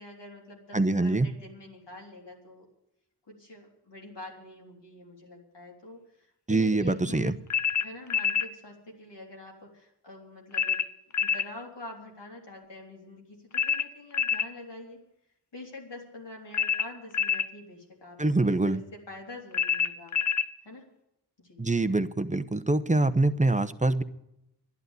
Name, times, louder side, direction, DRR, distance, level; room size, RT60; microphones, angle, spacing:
voice 1, 0.0-2.7 3.3-7.4 7.8-10.8 11.1-15.0 15.5-20.2 20.6-20.9 21.4-21.6, left 2 dB, 90° left, -2 dB, 3.6 m, -46 dB
voice 2, 0.7-1.3 6.5-7.3 18.2-18.8 21.6-24.0, right 2 dB, 20° right, 11 dB, 0.9 m, -24 dB
sound 1, 7.5-8.5 10.5-11.5 13.5-14.5 16.5-17.5 19.5-20.5, left 8 dB, 45° left, 0.7 m, -27 dB
11.5 x 11.0 x 8.1 m, 0.84 s
wide cardioid pair, 50°, 41 cm